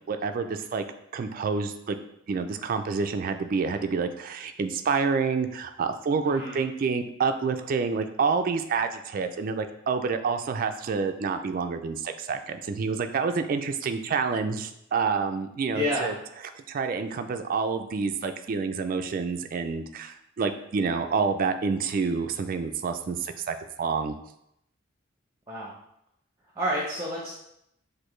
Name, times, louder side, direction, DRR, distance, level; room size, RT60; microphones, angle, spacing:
voice 1, 0.1-0.8 1.1-2.0 2.3-16.1 16.7-24.1, right 5 dB, 45° right, 7 dB, 0.3 m, -28 dB
voice 2, 6.2-6.6 15.7-16.1 25.5-25.7 26.5-27.3, equal, 15° right, -3 dB, 0.8 m, -29 dB
6.3 x 2.6 x 3.1 m, 0.77 s
head